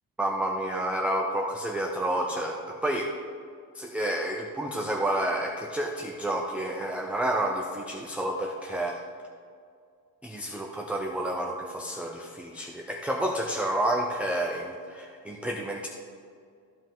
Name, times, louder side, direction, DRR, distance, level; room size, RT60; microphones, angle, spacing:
voice 1, 0.2-3.1 3.7-9.0 10.2-15.9, right 1 dB, 5° right, 0 dB, 0.4 m, -30 dB
14.0 x 5.3 x 3.8 m, 2.2 s
cardioid pair, 155°, 38 cm